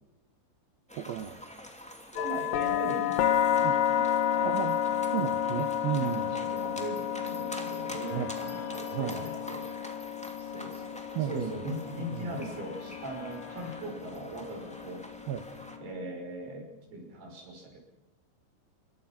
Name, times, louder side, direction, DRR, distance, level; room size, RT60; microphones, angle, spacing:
sound 1, 0.9-15.8, equal, 5° left, 0.5 m, -46 dB
voice 1, 0.9-1.4 3.6-3.8 4.4-4.8 5.1-6.3 8.1-8.3 8.9-9.2 11.2-11.5 12.1-12.3 15.3-15.4, right 11 dB, 85° right, 10 dB, 2.1 m, -33 dB
voice 2, 2.1-5.1 5.9-9.7 10.4-10.9 11.2-15.0 15.8-17.8, right 1 dB, 50° right, 1 dB, 7.4 m, -40 dB
sound 2, 2.2-16.0, left 10 dB, 75° left, 2.0 m, -31 dB
Guitar, 8.0-15.0, left 6 dB, 60° left, 1.5 m, -50 dB
27.5 x 24.0 x 5.9 m, 0.95 s
omnidirectional pair, 5.7 m